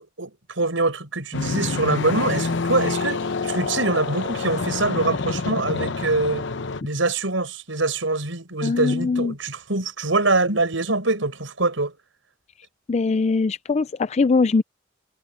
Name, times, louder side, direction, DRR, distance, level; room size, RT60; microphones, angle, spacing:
voice 1, 0.0-6.5 6.8-11.9, right 2 dB, 85° right, 5.5 m, -24 dB
sound 1, 1.3-6.8, left 4 dB, 65° left, 0.8 m, -27 dB
voice 2, 8.6-9.3 12.9-14.6, left 4 dB, 35° left, 0.4 m, -21 dB
head